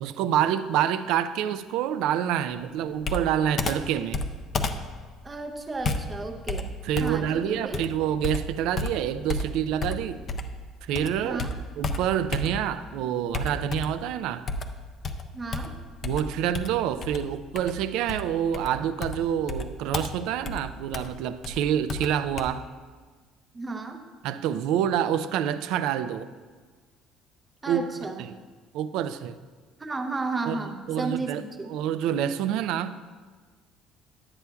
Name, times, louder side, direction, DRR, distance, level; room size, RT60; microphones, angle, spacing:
voice 1, 0.0-4.2 6.8-10.2 10.8-11.4 11.8-14.5 16.0-22.7 24.2-26.3 27.7-27.9 28.7-29.3 30.5-31.4 31.7-33.0, right 10 dB, 70° right, 13 dB, 0.3 m, -27 dB
Computer keyboard, 3.0-10.6 10.9-12.8 13.3-14.1 14.5-22.5, left 3 dB, 35° left, 0.4 m, -33 dB
voice 2, 5.2-6.7 7.0-7.8 11.2-11.5 15.3-15.7 23.5-24.0 27.6-28.3 29.8-31.7, right 3 dB, 15° right, 4 dB, 0.5 m, -33 dB
10.5 x 8.3 x 2.3 m, 1.5 s
cardioid pair, 165°, 0 cm